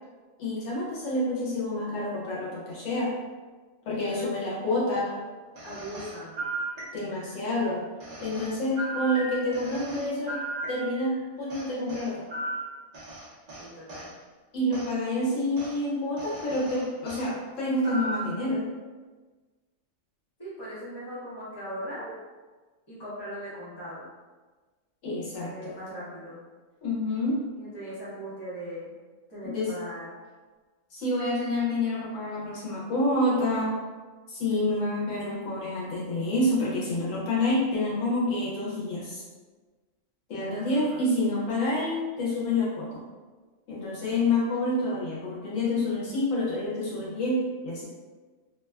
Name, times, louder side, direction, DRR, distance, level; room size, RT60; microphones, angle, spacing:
voice 1, 0.4-3.1 3.8-5.1 6.9-7.9 8.2-10.4 10.7-12.2 14.5-18.6 25.0-25.8 26.8-27.4 29.4-29.7 30.9-33.8 34.3-39.2 40.3-43.0 43.7-47.8, left 1 dB, 70° left, -6 dB, 1.0 m, -28 dB
voice 2, 4.0-4.7 5.6-6.4 13.6-14.1 20.4-22.2 22.9-24.1 25.3-26.4 27.6-28.9 29.3-30.2 34.5-35.0 40.4-41.0 44.0-44.2, equal, 20° left, -10 dB, 0.8 m, -40 dB
sound 1, 5.6-7.3 8.0-11.2 11.5-14.1 14.7-14.9 15.6-15.8 16.2-17.3 17.8-18.4, right 2 dB, 45° right, 0.6 m, -36 dB
2.7 x 2.2 x 2.2 m, 1.3 s
omnidirectional pair, 1.4 m